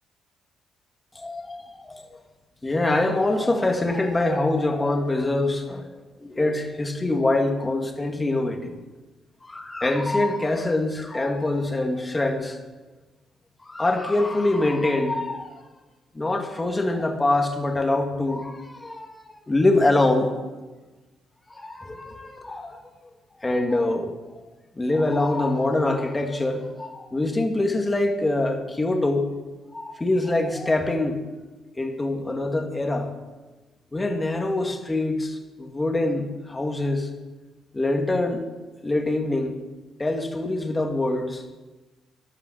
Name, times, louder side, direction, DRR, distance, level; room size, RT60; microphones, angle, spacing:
voice 1, 1.1-2.1 2.6-8.8 9.4-12.6 13.6-15.6 16.1-20.3 21.5-22.8 23.4-24.4 24.7-29.3 29.7-31.2 31.8-33.1 33.9-37.1 37.7-38.4 38.8-39.6 40.0-41.4, left 2 dB, 20° left, 4 dB, 2.2 m, -24 dB
14.0 x 12.0 x 6.4 m, 1.2 s
cardioid pair, 90°, 0 cm